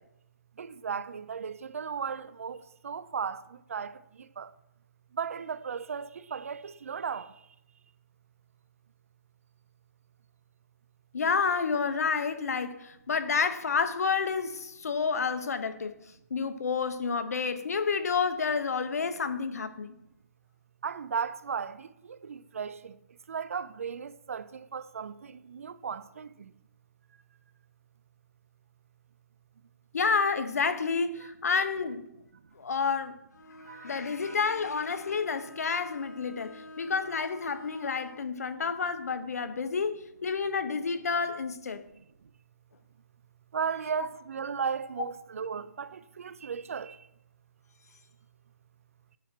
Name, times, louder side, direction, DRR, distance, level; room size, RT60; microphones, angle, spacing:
voice 1, 0.6-4.5 5.1-7.3 20.8-23.0 23.3-26.5 33.7-34.4 43.5-47.0, right 6 dB, 50° right, 0.5 m, -36 dB
voice 2, 11.1-15.9 16.3-19.9 29.9-32.1 32.6-33.2 33.8-41.8, left 5 dB, 60° left, 0.9 m, -29 dB
Bowed string instrument, 33.3-38.3, left 1 dB, 80° left, 1.9 m, -48 dB
9.1 x 7.3 x 4.4 m
hypercardioid pair, 165°, 9 cm